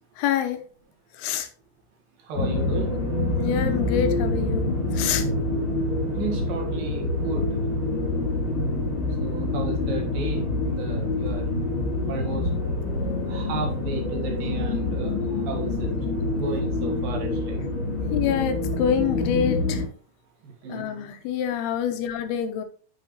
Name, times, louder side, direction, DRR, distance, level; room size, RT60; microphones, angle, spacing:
voice 1, 0.2-0.6 1.1-1.5 3.4-4.7 4.9-5.3 18.1-19.8 20.7-22.6, left 8 dB, 85° left, 9 dB, 2.8 m, -26 dB
voice 2, 2.3-2.9 6.2-7.5 9.2-11.5 12.1-12.4 13.3-15.9 16.3-17.6 20.4-21.0, right 4 dB, 65° right, 2 dB, 3.2 m, -33 dB
sound 1, 2.4-19.9, left 2 dB, 35° left, 3.4 m, -26 dB
8.8 x 6.8 x 3.0 m, 0.40 s
omnidirectional pair, 4.7 m